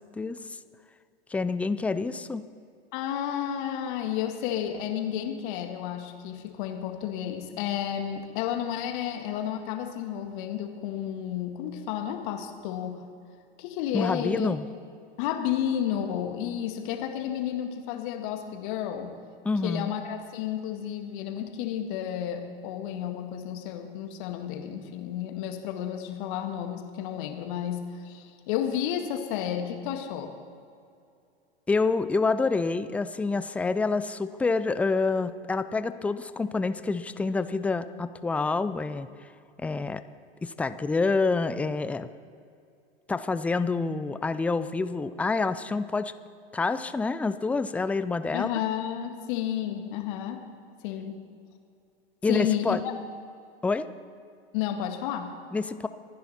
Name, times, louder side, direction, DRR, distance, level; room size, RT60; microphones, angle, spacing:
voice 1, 1.3-2.4 13.9-14.7 19.4-19.9 31.7-39.3 39.6-40.0 40.4-42.1 43.1-46.1 46.5-48.6 52.2-52.8 53.6-53.9 55.5-55.9, left 3 dB, 5° left, 13 dB, 0.4 m, -27 dB
voice 2, 2.9-13.0 13.6-14.5 15.2-19.1 19.6-30.3 48.3-50.4 50.8-51.2 52.3-52.9 54.5-55.3, left 10 dB, 55° left, 5 dB, 2.0 m, -31 dB
26.0 x 10.0 x 4.3 m, 2.4 s
hypercardioid pair, 105°, 31 cm